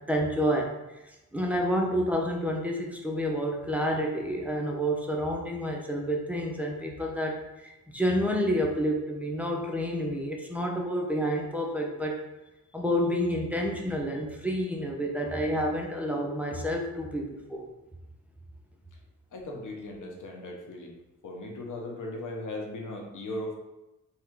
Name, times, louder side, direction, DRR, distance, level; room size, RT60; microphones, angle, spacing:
voice 1, 0.1-12.2 12.7-17.7, equal, 5° right, -1 dB, 0.8 m, -29 dB
voice 2, 19.3-20.9 21.2-23.6, left 1 dB, 70° left, 0 dB, 1.0 m, -37 dB
3.7 x 3.1 x 4.6 m, 0.99 s
cardioid pair, 75°, 32 cm